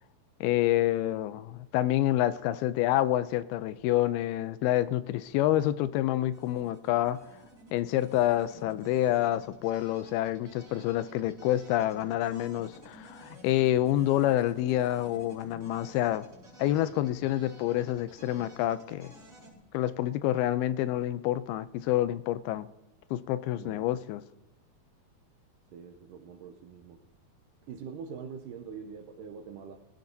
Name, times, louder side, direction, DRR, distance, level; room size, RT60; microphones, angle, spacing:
voice 1, 0.4-7.2 7.7-16.3 16.6-19.1 19.7-22.7 23.1-24.2, left 13 dB, 85° left, 2.5 m, -28 dB
sound 1, 6.3-19.5, equal, 20° right, 5.3 m, -52 dB
voice 2, 23.5-23.9 25.7-27.0 27.7-29.8, right 6 dB, 80° right, 2.0 m, -44 dB
20.0 x 15.5 x 2.7 m
omnidirectional pair, 4.4 m